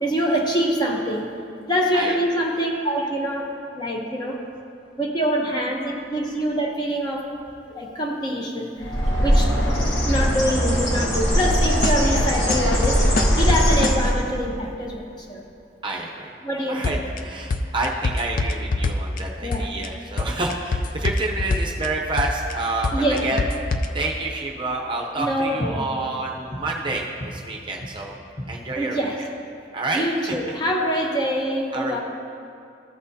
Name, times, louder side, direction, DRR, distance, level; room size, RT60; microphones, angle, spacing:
voice 1, 0.0-1.3 1.7-4.4 5.0-7.2 7.7-8.9 9.2-9.5 10.0-13.0 13.4-15.0 15.3-15.4 16.4-16.9 19.4-19.7 22.9-23.3 25.2-25.9 28.4-28.5 28.7-29.2 29.9-32.0, equal, 25° left, -1 dB, 0.9 m, -25 dB
Bird, 8.8-14.3, equal, 80° left, 1.8 m, -21 dB
sound 1, 11.4-14.1 16.8-17.2 17.5-19.2 19.5-19.9 20.2-21.9 22.2-22.5 22.8-23.9, left 3 dB, 45° left, 0.4 m, -24 dB
voice 2, 15.8-16.3 16.7-23.4 23.9-28.2 28.5-29.1 29.7-30.0 30.3-30.4 31.7-32.0, right 2 dB, 25° right, -1 dB, 0.7 m, -28 dB
14.5 x 6.0 x 2.8 m, 2.5 s
head